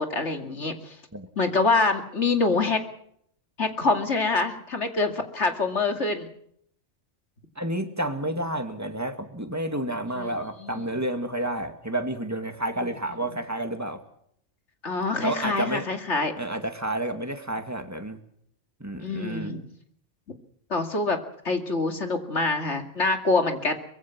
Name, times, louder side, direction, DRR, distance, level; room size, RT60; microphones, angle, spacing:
voice 1, 0.0-1.0 1.4-2.8 3.6-6.3 10.1-10.8 12.8-13.2 14.8-16.3 19.0-19.6 20.7-21.2 21.4-23.7, left 3 dB, 70° left, 5 dB, 2.8 m, -26 dB
voice 2, 7.6-14.0 15.2-15.9 16.4-18.2 18.8-19.5, right 1 dB, 15° right, 6 dB, 2.2 m, -30 dB
24.0 x 22.0 x 6.1 m, 0.68 s
omnidirectional pair, 1.2 m